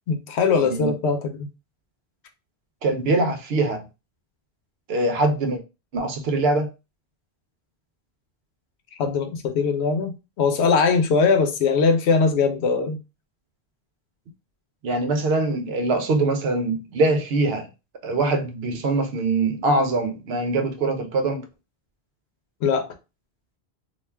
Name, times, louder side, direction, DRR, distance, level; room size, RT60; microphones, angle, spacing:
voice 1, 0.1-1.5 9.0-13.0 22.6-22.9, left 5 dB, 85° left, 0.9 m, -21 dB
voice 2, 2.8-3.8 4.9-5.6 5.9-6.7 14.8-17.7 18.0-21.4, right 2 dB, 70° right, 0.8 m, -23 dB
2.4 x 2.3 x 3.2 m
omnidirectional pair, 1.1 m